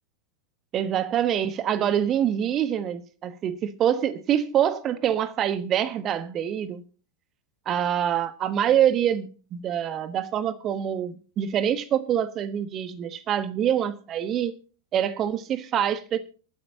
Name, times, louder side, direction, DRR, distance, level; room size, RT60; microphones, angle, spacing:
voice 1, 0.7-6.8 7.7-14.5 14.9-16.2, right 10 dB, 30° right, 1.2 m, -25 dB
24.5 x 9.7 x 2.8 m
figure-of-eight pair, 90°, 0 cm